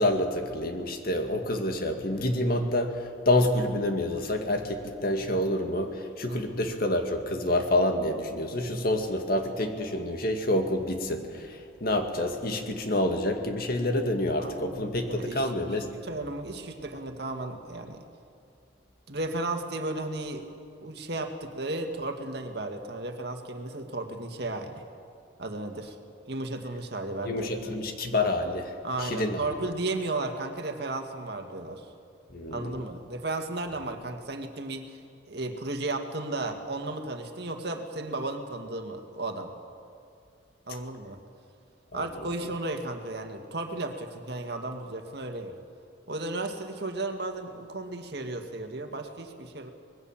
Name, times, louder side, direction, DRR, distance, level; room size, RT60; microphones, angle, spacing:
voice 1, 0.0-2.9 3.3-5.9 6.2-11.2 11.8-15.9 27.3-28.7 29.0-29.4 32.3-32.8 41.9-42.0, left 1 dB, 50° left, 5 dB, 2.2 m, -27 dB
voice 2, 6.3-6.6 14.4-18.0 19.1-20.5 20.8-24.8 25.4-26.0 26.3-27.8 28.8-31.9 32.5-35.0 35.3-39.5 40.7-41.2 41.9-45.5 46.1-49.7, right 2 dB, 60° right, 5 dB, 2.0 m, -34 dB
25.0 x 20.5 x 7.4 m, 2.4 s
head